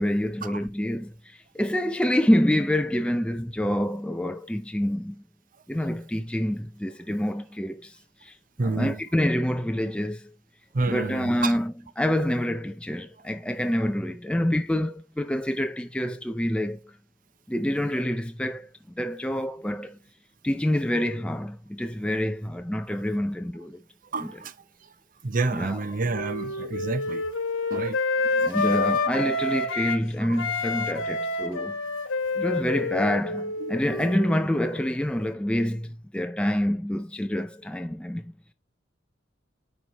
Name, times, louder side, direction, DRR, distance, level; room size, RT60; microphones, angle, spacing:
voice 1, 0.0-5.2 5.7-8.4 8.6-10.3 10.9-16.9 17.5-18.7 19.0-20.0 20.4-23.8 24.2-24.3 25.5-25.8 28.4-31.8 32.4-38.3, equal, 5° left, 0.4 m, -27 dB
voice 2, 8.6-9.0 10.7-11.5 24.1-24.5 25.2-27.2 27.7-28.0 28.6-28.7 33.6-33.7, right 3 dB, 40° right, 0.6 m, -28 dB
Wind instrument woodwind instrument, 25.5-30.0 30.3-34.8, left 3 dB, 75° left, 1.5 m, -28 dB
9.3 x 4.8 x 2.9 m
head